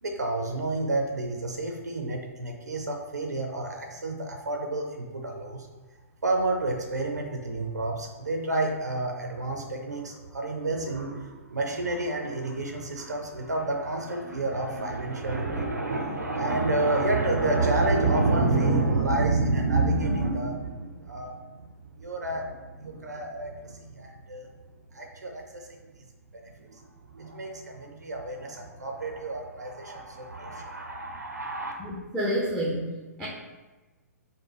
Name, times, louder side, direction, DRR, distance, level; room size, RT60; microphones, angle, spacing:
voice 1, 0.0-5.7 6.2-21.6 21.9-24.5 24.9-25.8 26.3-31.7, right 2 dB, 80° right, 2 dB, 0.6 m, -29 dB
voice 2, 31.8-33.3, equal, ahead, -6 dB, 0.7 m, -29 dB
5.2 x 2.2 x 3.0 m, 1.2 s
figure-of-eight pair, 115°, 9 cm